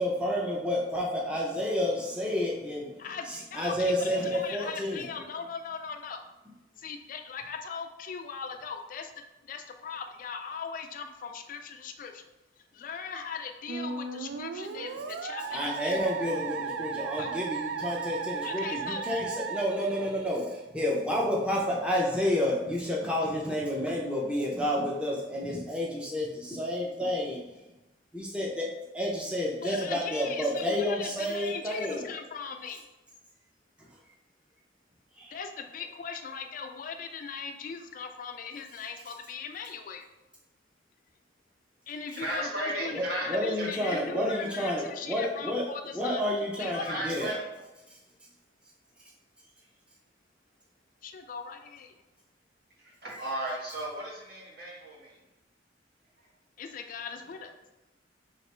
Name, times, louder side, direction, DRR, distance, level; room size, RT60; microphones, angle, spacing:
voice 1, 0.0-5.0 15.5-27.6 28.1-28.7 28.9-32.0 33.8-33.9 35.2-35.4 42.9-45.6 45.9-47.3 47.9-48.0, left 1 dB, 5° right, -4 dB, 0.5 m, -30 dB
voice 2, 3.0-6.2 6.8-9.1 9.4-12.3 12.6-16.0 17.1-17.3 18.4-19.2 29.6-32.9 35.3-40.1 41.9-46.2 46.6-47.1 51.0-52.0 56.6-57.5, left 5 dB, 45° left, 6 dB, 0.3 m, -39 dB
Musical instrument, 13.7-20.6, right 5 dB, 80° right, 0.3 m, -36 dB
voice 3, 42.1-43.3 43.6-44.0 46.8-47.4 52.8-55.2, right 1 dB, 55° right, -4 dB, 1.2 m, -35 dB
3.3 x 2.9 x 4.2 m, 1.0 s
head